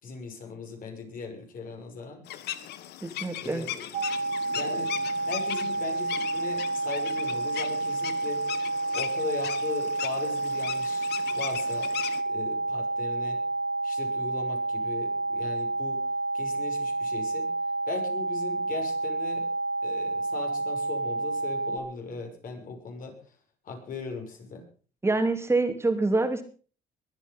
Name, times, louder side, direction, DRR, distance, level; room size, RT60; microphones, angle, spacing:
voice 1, 0.0-2.2 3.3-3.9 4.5-4.9 5.3-8.4 8.9-11.9 12.3-13.4 13.8-16.0 16.3-17.5 17.9-19.5 19.8-23.1 23.6-24.6, left 4 dB, 55° left, 3 dB, 6.2 m, -39 dB
sound 1, 2.3-12.2, left 12 dB, 75° left, 1.6 m, -38 dB
voice 2, 3.0-3.7 25.0-26.4, right 2 dB, 15° right, 7 dB, 3.0 m, -26 dB
sound 2, 3.9-21.8, right 2 dB, 60° right, 2.8 m, -30 dB
22.5 x 9.3 x 5.5 m, 0.40 s
cardioid pair, 110°, 17 cm